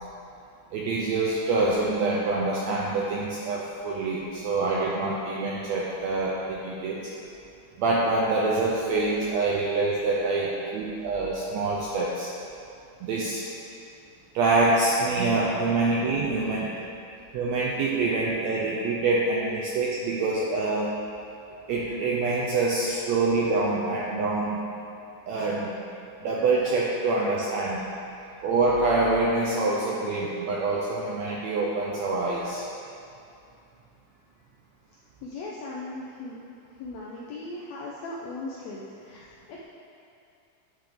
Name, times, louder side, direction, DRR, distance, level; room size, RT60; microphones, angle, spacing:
voice 1, 0.7-7.1 7.8-12.3 13.0-13.5 14.3-16.8 17.3-20.9 21.7-24.6 25.3-25.8 26.2-27.8 28.4-32.6, right 3 dB, 85° right, -4 dB, 1.5 m, -26 dB
voice 2, 35.2-36.4 36.8-39.6, left 2 dB, 85° left, -4 dB, 1.5 m, -38 dB
10.0 x 3.4 x 3.8 m, 2.6 s
omnidirectional pair, 3.7 m